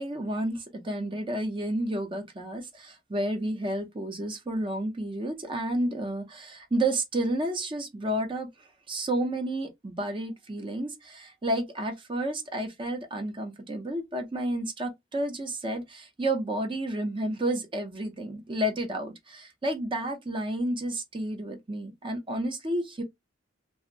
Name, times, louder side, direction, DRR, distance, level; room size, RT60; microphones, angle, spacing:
voice 1, 0.0-23.0, right 1 dB, 30° right, 0.6 m, -31 dB
2.5 x 2.1 x 3.7 m
head